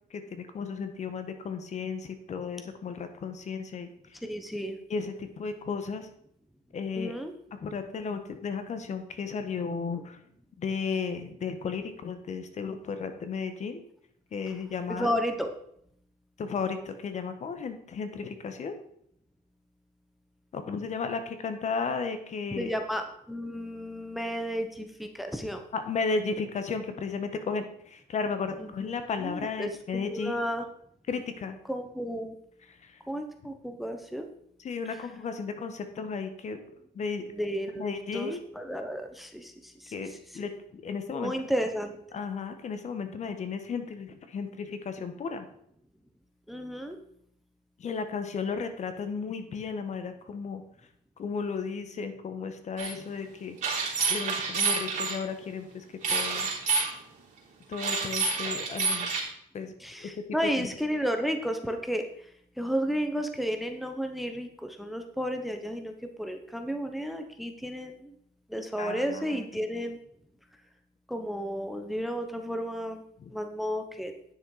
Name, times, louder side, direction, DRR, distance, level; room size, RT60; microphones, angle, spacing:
voice 1, 0.1-4.2 4.9-6.1 6.7-7.1 7.5-10.2 10.6-13.8 14.3-15.1 16.4-18.7 20.5-22.7 25.7-30.3 31.1-31.6 32.7-33.0 34.6-36.6 36.9-37.2 37.8-38.4 39.9-41.3 42.1-45.5 47.8-50.6 51.2-53.6 54.1-56.5 57.7-59.1 59.5-60.1 60.6-60.7 68.8-69.6 73.2-73.3, left 5 dB, 45° left, 8 dB, 1.3 m, -34 dB
voice 2, 4.2-4.8 7.0-7.3 14.9-15.5 22.5-25.6 28.6-28.7 29.2-30.6 31.7-32.4 33.1-34.3 37.3-37.9 38.1-40.4 41.1-42.0 46.5-47.0 59.8-62.3 62.6-68.1 68.5-70.0 71.1-73.0 73.3-74.1, equal, ahead, 6 dB, 1.0 m, -32 dB
sound 1, 52.8-52.9 53.6-55.2 56.0-56.9 57.7-59.2, right 4 dB, 45° right, 3.5 m, -28 dB
9.8 x 6.5 x 4.9 m, 0.69 s
cardioid pair, 110°, 17 cm